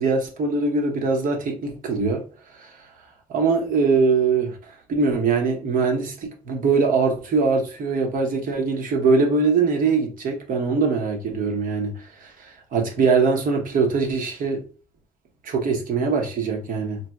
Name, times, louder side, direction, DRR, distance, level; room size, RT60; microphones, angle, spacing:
voice 1, 0.0-2.2 2.6-2.7 3.3-4.6 4.9-12.3 12.7-14.6 15.4-17.0, right 4 dB, 55° right, 0.8 m, -22 dB
4.0 x 2.2 x 2.2 m
cardioid pair, 110°, 17 cm